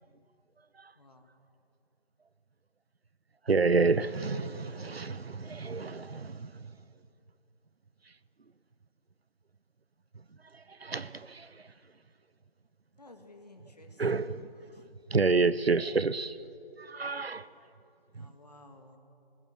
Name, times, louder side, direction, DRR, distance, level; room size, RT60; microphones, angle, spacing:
voice 1, 3.5-6.5 10.8-11.4 14.0-14.4 15.1-16.4 16.9-17.4, right 4 dB, 90° right, 1.0 m, -28 dB
voice 2, 13.0-14.3 18.1-19.0, left 2 dB, 40° left, 2.2 m, -54 dB
27.0 x 19.5 x 6.3 m
figure-of-eight pair, 180°, 30 cm